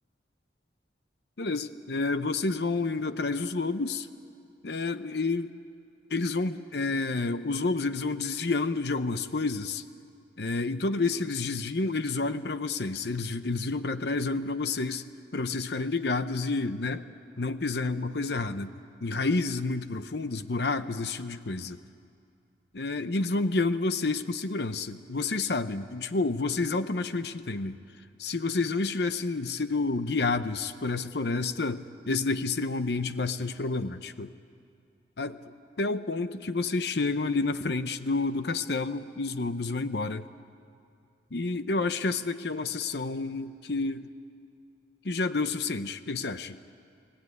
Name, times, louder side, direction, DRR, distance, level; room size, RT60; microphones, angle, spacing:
voice 1, 1.4-4.1 4.6-5.6 6.1-9.8 10.4-15.1 15.3-17.0 17.4-18.7 19.0-21.8 22.7-27.8 28.2-34.3 35.2-35.4 35.8-40.3 41.3-44.1 45.0-46.6, left 3 dB, 65° left, 11 dB, 0.8 m, -29 dB
30.0 x 18.5 x 9.6 m, 2.4 s
head